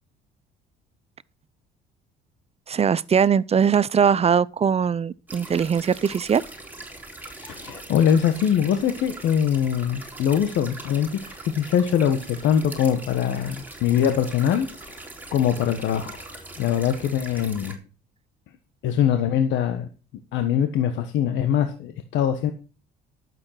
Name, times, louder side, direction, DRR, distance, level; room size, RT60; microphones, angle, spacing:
voice 1, 2.7-6.4, right 7 dB, 30° right, 0.6 m, -21 dB
sound 1, 5.3-17.7, right 2 dB, 10° right, 3.8 m, -41 dB
voice 2, 7.3-14.7 15.0-15.1 15.3-16.2 16.6-17.8 18.8-19.9 20.3-22.5, left 9 dB, 70° left, 1.4 m, -23 dB
12.0 x 7.7 x 5.8 m
supercardioid pair, 85°, 20 cm